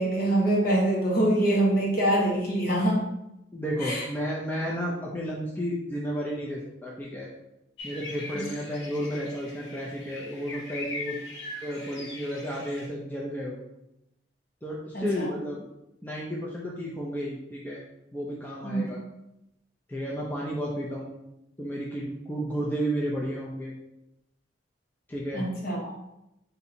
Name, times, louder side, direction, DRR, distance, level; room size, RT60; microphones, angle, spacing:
voice 1, 0.0-3.0 3.8-4.0 8.3-8.4 14.9-15.3 18.6-18.8 25.3-25.9, right 1 dB, 50° left, -4 dB, 1.3 m, -24 dB
voice 2, 3.5-7.3 7.8-11.2 11.6-13.6 14.6-15.6 16.0-17.8 18.1-19.0 19.9-21.1 21.6-23.7 25.1-25.5, equal, 10° left, -4 dB, 0.5 m, -32 dB
sound 1, 7.8-12.9, left 2 dB, 70° left, 1.3 m, -41 dB
4.0 x 2.7 x 4.2 m, 0.87 s
head